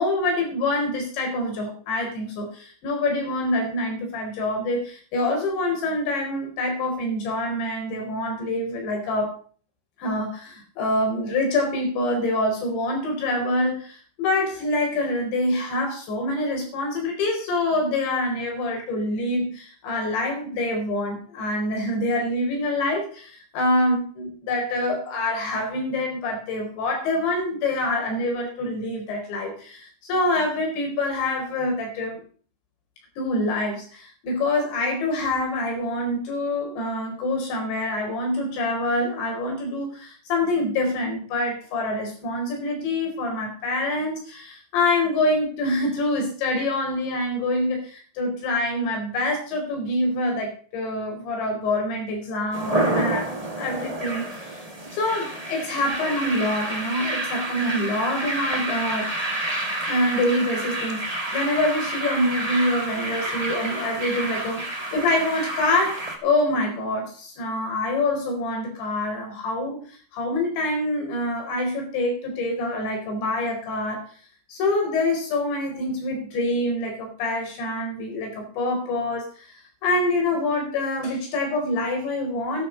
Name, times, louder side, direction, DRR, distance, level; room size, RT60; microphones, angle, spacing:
voice 1, 0.0-9.4 10.0-32.2 33.2-53.3 53.6-54.6 54.9-59.1 59.9-74.0 74.5-79.5 79.8-82.7, left 1 dB, 80° left, 2 dB, 6.6 m, -26 dB
sound 1, 52.5-66.1, right 1 dB, 70° right, 0.3 m, -29 dB
12.5 x 11.0 x 5.2 m, 0.42 s
omnidirectional pair, 5.0 m